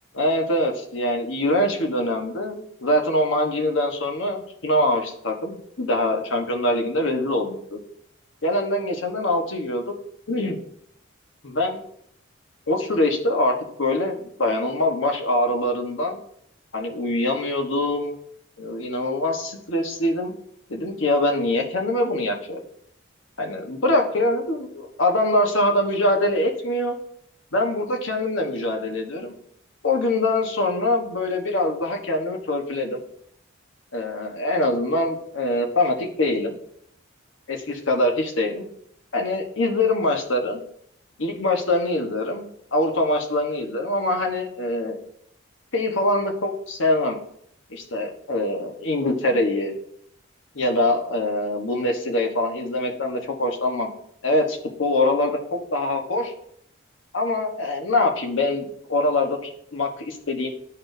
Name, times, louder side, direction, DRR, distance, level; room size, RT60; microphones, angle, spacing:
voice 1, 0.1-7.8 8.4-9.9 10.3-10.6 11.4-11.8 12.7-13.5 13.8-16.2 16.7-18.1 18.6-20.3 20.7-22.6 23.4-27.0 27.5-29.3 29.8-33.0 33.9-36.5 37.5-38.6 39.1-40.6 41.2-45.0 45.7-47.2 47.7-49.7 50.5-53.9 54.2-56.3 57.1-60.5, left 1 dB, 70° left, 2 dB, 1.1 m, -24 dB
12.0 x 4.3 x 2.6 m, 0.69 s
head